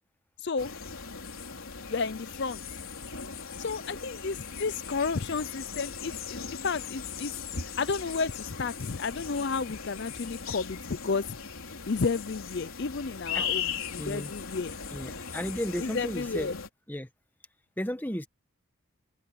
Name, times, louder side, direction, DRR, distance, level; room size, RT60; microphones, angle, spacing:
voice 1, 0.4-0.7 1.9-2.6 3.6-6.4 6.6-7.3 7.8-11.4 11.9-14.8 15.8-16.6, left 4 dB, 50° left, 0.5 m, -32 dB
sound 1, 0.6-16.7, left 6 dB, 75° left, 3.5 m, -38 dB
voice 2, 14.0-14.3 14.9-16.5 16.9-17.1 17.8-18.3, equal, 10° left, 1.4 m, -34 dB
open air
head